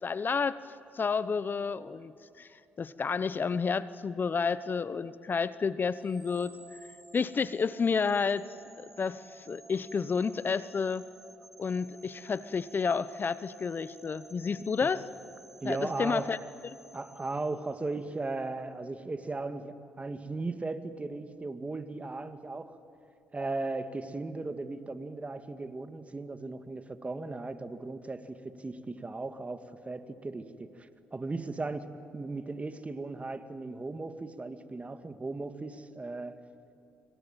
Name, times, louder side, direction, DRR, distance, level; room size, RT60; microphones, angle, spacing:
voice 1, 0.0-0.6 0.9-2.1 2.4-2.5 2.8-6.6 7.1-11.1 11.6-15.0 15.6-16.4 16.6-16.8, left 5 dB, 40° left, 16 dB, 0.8 m, -30 dB
sound 1, 5.9-18.0, right 1 dB, 5° right, 7.3 m, -54 dB
voice 2, 15.6-16.3 16.9-22.8 23.3-36.4, right 3 dB, 25° right, 9 dB, 2.0 m, -37 dB
26.0 x 25.0 x 9.0 m, 2.7 s
supercardioid pair, 55°, 5 cm